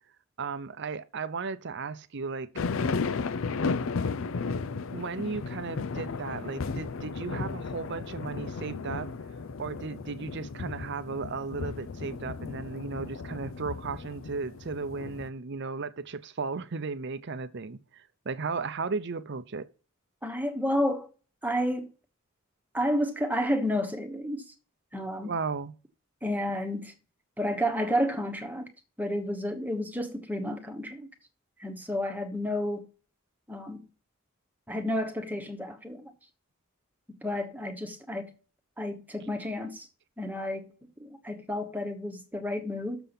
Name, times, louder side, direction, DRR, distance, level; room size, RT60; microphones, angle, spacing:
voice 1, 0.4-2.5 4.9-9.1 9.6-19.7 25.2-25.7, right 4 dB, 60° right, 0.6 m, -35 dB
sound 1, 2.6-15.3, left 4 dB, 75° left, 0.5 m, -34 dB
voice 2, 20.2-21.1 21.4-21.9 22.7-24.4 24.9-25.3 26.2-26.9 27.4-28.6 29.0-31.1 31.6-32.9 33.5-33.9 34.7-36.1 37.1-38.3 38.8-39.9 40.2-40.7 41.0-43.0, equal, 10° right, 1.2 m, -31 dB
7.0 x 5.7 x 6.9 m
head